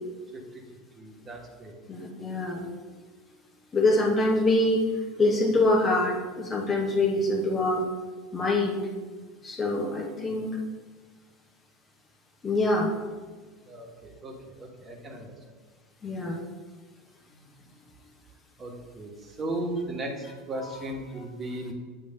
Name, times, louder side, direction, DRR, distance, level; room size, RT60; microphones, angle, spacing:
voice 1, 1.0-1.7 13.7-15.3 18.6-21.7, right 1 dB, 25° right, 0 dB, 1.5 m, -36 dB
voice 2, 1.9-2.7 3.7-4.9 5.2-7.9 8.3-8.8 9.4-10.6 12.4-12.9 16.0-16.4, left 2 dB, 25° left, 1 dB, 1.1 m, -25 dB
8.8 x 3.1 x 5.4 m, 1.4 s
figure-of-eight pair, 75°, 0 cm